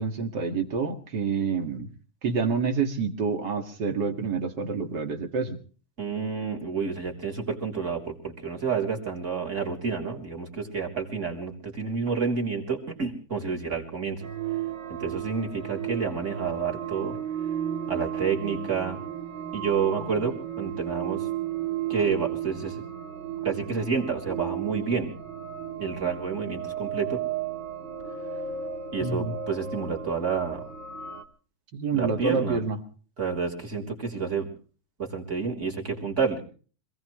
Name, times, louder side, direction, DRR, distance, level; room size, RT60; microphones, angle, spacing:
voice 1, 0.0-1.9 2.2-5.6 29.0-29.3 31.7-32.8, right 5 dB, 70° right, 5 dB, 2.6 m, -28 dB
voice 2, 6.0-14.2 14.9-17.2 17.9-19.0 19.5-21.3 21.9-22.8 23.4-25.1 25.8-27.2 28.9-30.7 31.9-32.6 33.2-34.5 35.0-36.4, right 5 dB, 40° right, 0 dB, 3.8 m, -29 dB
sound 1, 14.2-31.2, right 9 dB, 85° right, 2.2 m, -34 dB
26.5 x 17.0 x 3.2 m, 0.41 s
omnidirectional pair, 1.9 m